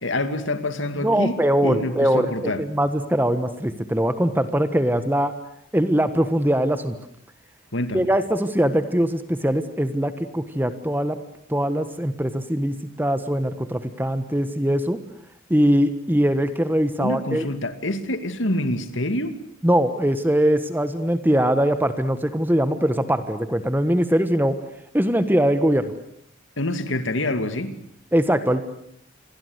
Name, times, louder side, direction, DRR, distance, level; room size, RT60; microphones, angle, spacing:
voice 1, 0.0-1.3 1.6-2.6 7.7-8.1 17.0-19.4 26.6-27.7, left 1 dB, 70° left, 10 dB, 2.5 m, -26 dB
voice 2, 1.0-5.3 5.7-7.0 7.9-11.2 11.5-15.0 15.5-17.4 19.6-24.6 24.9-25.9 28.1-28.6, equal, 10° right, 11 dB, 1.3 m, -21 dB
28.0 x 23.5 x 8.2 m, 0.70 s
head